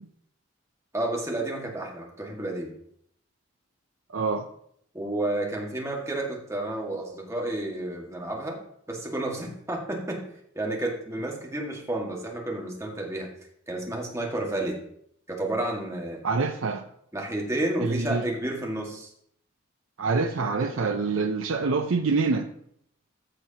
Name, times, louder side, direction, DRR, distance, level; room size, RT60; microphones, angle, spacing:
voice 1, 0.9-2.7 4.9-8.6 8.9-10.2 10.6-13.3 13.7-14.8 15.3-16.2 17.1-19.1, right 1 dB, 15° right, 1.8 m, -31 dB
voice 2, 4.1-4.5 16.2-16.9 17.8-18.2 20.0-22.5, right 4 dB, 80° right, 0.6 m, -26 dB
14.0 x 6.3 x 2.9 m
head